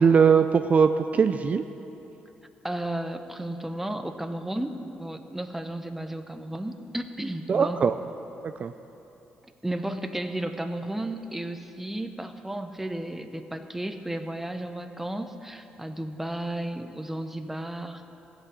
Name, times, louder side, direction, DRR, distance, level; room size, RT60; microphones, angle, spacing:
voice 1, 0.0-1.6 7.5-7.9 8.6-8.7, right 6 dB, 45° right, 9 dB, 0.4 m, -20 dB
voice 2, 2.6-7.8 9.6-18.0, right 1 dB, 5° right, 7 dB, 0.8 m, -33 dB
15.0 x 6.0 x 8.2 m, 3.0 s
cardioid pair, 85°, 4 cm